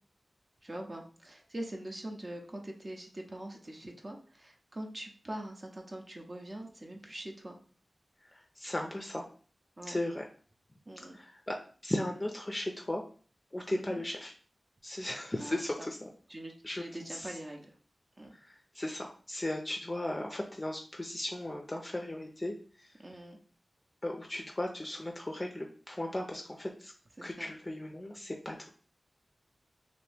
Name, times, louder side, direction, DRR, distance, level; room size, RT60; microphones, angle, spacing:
voice 1, 0.6-7.6 9.8-10.0 10.9-11.2 13.7-14.0 15.4-15.9 16.3-17.7 18.2-18.3 23.0-23.4 27.2-27.5, right 1 dB, 40° right, 2 dB, 0.5 m, -43 dB
voice 2, 8.2-9.3 9.9-10.2 11.1-11.6 11.8-13.0 13.5-14.3 14.8-16.0 16.6-16.8 17.1-17.4 18.3-23.0 24.0-26.9 27.2-28.7, left 1 dB, 25° left, 1 dB, 0.4 m, -36 dB
2.8 x 2.6 x 3.3 m, 0.42 s
wide cardioid pair, 65°, 0 cm